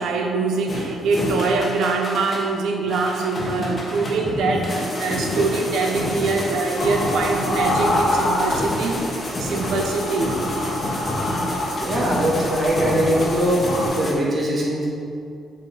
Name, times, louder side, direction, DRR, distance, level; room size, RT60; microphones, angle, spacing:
voice 1, 0.0-9.0 9.4-10.4, right 3 dB, 80° right, 1 dB, 1.0 m, -23 dB
sound 1, 0.7-2.5 2.9-14.1, left 1 dB, 35° left, 1.5 m, -28 dB
sound 2, 6.8-9.0 9.3-13.9, left 1 dB, 75° left, 1.5 m, -27 dB
voice 2, 11.8-13.6 13.9-14.9, equal, 30° right, -5 dB, 1.7 m, -21 dB
7.6 x 3.4 x 5.6 m, 2.4 s
cardioid pair, 90°, 0 cm